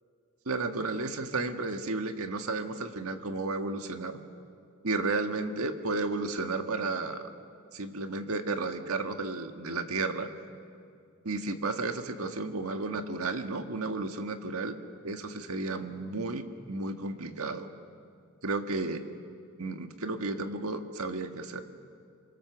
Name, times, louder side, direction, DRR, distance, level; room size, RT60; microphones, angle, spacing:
voice 1, 0.4-4.2 4.8-7.3 7.7-10.3 11.2-14.7 15.0-17.7 18.4-19.0 19.6-21.6, right 3 dB, 80° right, 6 dB, 1.6 m, -33 dB
27.5 x 24.5 x 6.9 m, 2.3 s
head